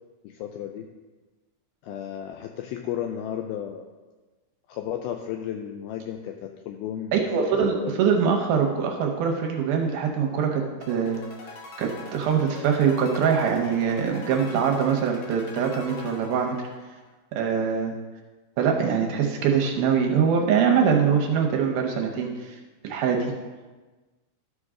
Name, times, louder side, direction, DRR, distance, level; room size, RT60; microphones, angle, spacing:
voice 1, 0.2-0.9 1.8-3.9 4.7-7.1 7.4-8.3, left 10 dB, 85° left, 4 dB, 2.1 m, -34 dB
voice 2, 7.1-11.2 11.8-16.6 17.4-17.9 18.6-22.6 22.8-23.3, right 6 dB, 75° right, 2 dB, 2.4 m, -23 dB
sound 1, 10.8-17.1, left 3 dB, 70° left, 2.6 m, -44 dB
13.0 x 6.1 x 3.7 m, 1.3 s
omnidirectional pair, 4.8 m